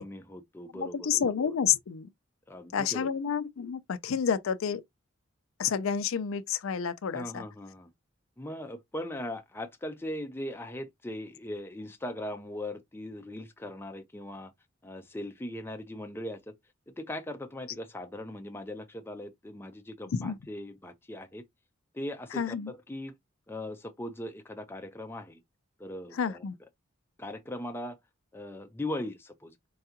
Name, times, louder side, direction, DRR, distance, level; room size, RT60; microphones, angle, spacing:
voice 1, 0.0-1.6 2.5-3.1 7.1-7.9 8.4-14.5 14.8-16.5 16.9-21.5 21.9-23.2 23.5-25.4 25.8-26.5 27.2-28.0 28.3-29.5, left 1 dB, 10° left, 0.4 m, -39 dB
voice 2, 0.7-2.1 2.7-4.8 5.6-7.4 20.1-20.4 22.4-22.7 26.1-26.5, left 7 dB, 85° left, 0.4 m, -29 dB
4.6 x 2.3 x 2.8 m
head